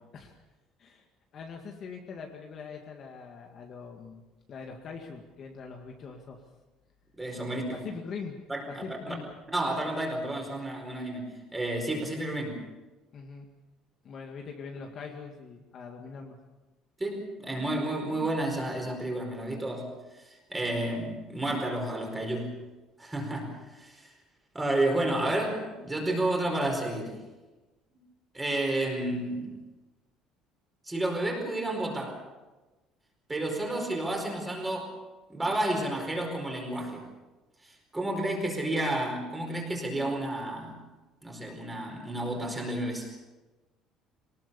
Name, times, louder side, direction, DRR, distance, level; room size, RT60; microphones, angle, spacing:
voice 1, 1.3-6.4 7.5-8.4 8.7-9.3 11.9-12.1 13.1-13.5 14.0-16.4, left 5 dB, 35° left, 2 dB, 2.0 m, -42 dB
voice 2, 7.2-7.8 8.5-8.6 9.1-9.2 9.5-12.6 17.0-19.9 20.2-22.6 23.0-24.1 24.5-27.2 28.3-29.5 30.9-32.2 33.3-34.9 35.3-37.0 37.9-40.8 41.2-43.2, right 1 dB, 10° right, 1 dB, 4.7 m, -31 dB
23.5 x 19.5 x 7.0 m, 1.1 s
cardioid pair, 170°, 0 cm